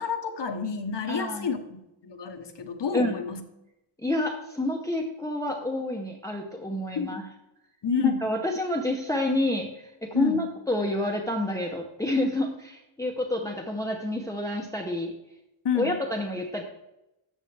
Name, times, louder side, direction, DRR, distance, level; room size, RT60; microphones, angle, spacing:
voice 1, 0.0-3.4 7.0-7.1 7.8-8.2 10.1-10.4 15.6-16.0, left 6 dB, 55° left, 7 dB, 1.0 m, -29 dB
voice 2, 1.1-1.5 2.9-3.1 4.0-7.3 8.0-15.1 15.7-16.6, left 1 dB, 5° left, 1 dB, 0.8 m, -28 dB
13.0 x 7.5 x 3.3 m, 0.91 s
wide cardioid pair, 140°, 50 cm